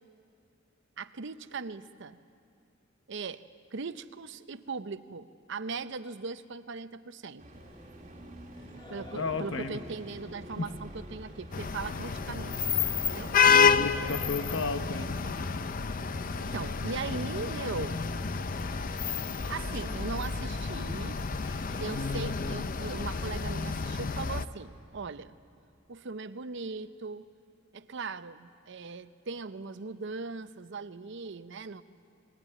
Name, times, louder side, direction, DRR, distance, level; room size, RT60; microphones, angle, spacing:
voice 1, 1.0-2.2 3.1-3.4 3.7-7.6 8.9-13.4 16.4-18.1 19.5-21.2 21.8-25.4 25.9-27.3 27.7-31.8, right 4 dB, 65° right, 12 dB, 0.7 m, -39 dB
sound 1, 7.4-14.6, equal, 35° right, 1.8 m, -49 dB
Singing, 7.5-23.5, left 1 dB, 25° left, 2.4 m, -51 dB
voice 2, 9.2-9.8 10.6-10.7 13.5-15.2 17.8-17.9, left 3 dB, 70° left, 9 dB, 1.0 m, -33 dB
sound 2, 11.5-24.4, left 6 dB, 45° left, 0.6 m, -29 dB
21.0 x 20.0 x 9.3 m, 2.3 s
head